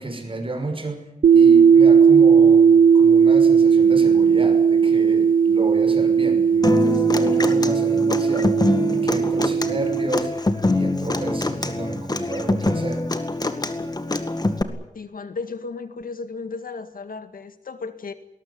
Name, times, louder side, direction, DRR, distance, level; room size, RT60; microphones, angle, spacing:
voice 1, 0.0-8.6 8.9-13.1 13.6-13.7, right 2 dB, 40° right, 6 dB, 6.1 m, -32 dB
sound 1, 1.2-10.1, right 6 dB, 90° right, 0.8 m, -16 dB
Human voice / Acoustic guitar, 6.6-14.6, left 2 dB, 30° left, 2.1 m, -24 dB
voice 2, 14.9-18.1, left 4 dB, 90° left, 10 dB, 2.0 m, -34 dB
21.0 x 19.0 x 9.7 m, 0.81 s
wide cardioid pair, 95°, 14 cm